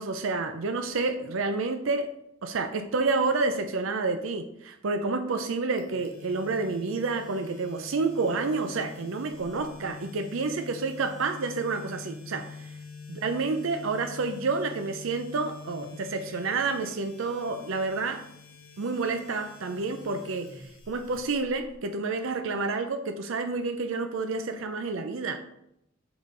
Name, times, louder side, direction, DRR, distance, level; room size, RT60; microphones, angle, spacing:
voice 1, 0.0-2.1 2.4-12.8 13.1-18.2 18.8-25.4, right 3 dB, 70° right, 7 dB, 0.5 m, -29 dB
sound 1, 5.8-21.7, left 4 dB, 50° left, 1.5 m, -46 dB
5.4 x 5.0 x 3.8 m, 0.79 s
head